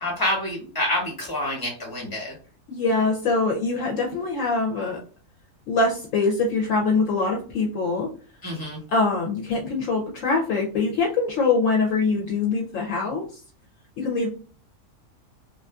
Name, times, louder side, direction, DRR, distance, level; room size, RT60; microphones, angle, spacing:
voice 1, 0.0-2.3 8.4-8.8, left 1 dB, 15° left, -1 dB, 0.9 m, -27 dB
voice 2, 2.7-5.0 5.7-8.1 8.9-13.4 14.0-14.3, left 3 dB, 65° left, -1 dB, 0.9 m, -23 dB
2.5 x 2.5 x 2.2 m, 0.39 s
omnidirectional pair, 1.6 m